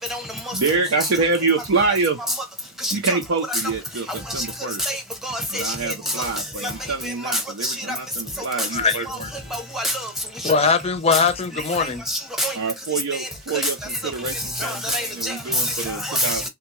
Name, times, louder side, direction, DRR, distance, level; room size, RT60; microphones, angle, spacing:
voice 1, 0.5-2.2 2.9-4.8 5.5-9.1 9.4-9.5 12.5-16.4, right 4 dB, 85° right, 0.6 m, -26 dB
voice 2, 4.9-5.7 7.6-7.7 9.5-10.0 11.1-11.2 12.1-12.5 14.6-15.3 16.1-16.4, equal, ahead, 0.8 m, -26 dB
voice 3, 8.6-9.3 10.4-12.0, left 5 dB, 30° left, 0.5 m, -21 dB
3.5 x 2.2 x 2.8 m
head